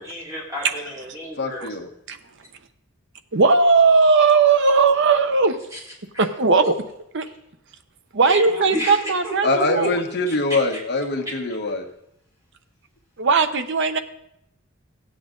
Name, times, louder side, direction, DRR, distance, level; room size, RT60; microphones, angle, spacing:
voice 1, 0.0-1.7 5.7-5.8 6.1-6.3 8.2-9.9 10.3-10.8 11.2-11.3 11.6-11.7, equal, 15° right, -5 dB, 4.3 m, -31 dB
voice 2, 1.4-1.9 9.4-11.8, left 2 dB, 55° left, 3 dB, 1.3 m, -23 dB
voice 3, 3.3-5.6 6.2-6.7 7.1-7.3 8.1-10.0 13.2-14.0, right 4 dB, 60° right, 9 dB, 0.8 m, -18 dB
15.5 x 8.6 x 3.8 m, 0.80 s
head